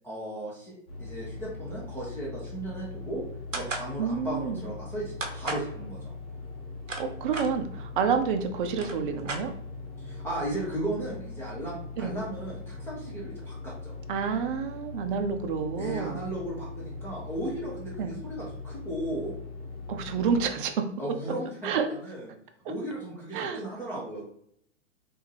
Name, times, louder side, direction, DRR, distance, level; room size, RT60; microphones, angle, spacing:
voice 1, 0.0-3.2 3.5-6.1 10.0-13.9 15.8-19.3 21.0-22.3 22.7-24.2, right 1 dB, 5° left, -7 dB, 0.5 m, -36 dB
sound 1, 0.9-20.5, left 3 dB, 50° left, 1.3 m, -41 dB
sound 2, 3.5-3.9 5.2-5.7 6.6-7.5 8.3-8.4 8.7-9.9, right 3 dB, 90° right, 0.7 m, -35 dB
voice 2, 4.0-4.6 7.0-9.5 12.0-12.1 14.1-16.3 18.0-18.1 19.9-20.9 21.6-21.9 23.3-23.6, right 6 dB, 45° right, 6 dB, 0.5 m, -29 dB
3.4 x 2.5 x 3.2 m, 0.66 s
figure-of-eight pair, 105°, 37 cm